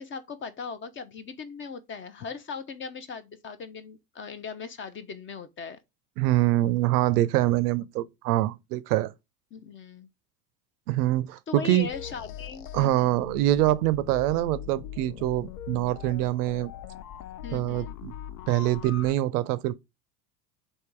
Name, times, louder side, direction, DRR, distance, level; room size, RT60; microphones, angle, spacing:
voice 1, 0.0-5.8 9.5-10.1 11.5-13.2 17.4-17.9, left 5 dB, 25° left, 0.5 m, -39 dB
voice 2, 6.2-9.1 10.9-11.9 12.7-16.7 17.5-18.1 18.5-19.7, right 15 dB, 70° right, 0.5 m, -25 dB
sound 1, 11.8-19.1, left 10 dB, 75° left, 0.6 m, -41 dB
3.5 x 2.7 x 4.5 m
hypercardioid pair, 85°, 47 cm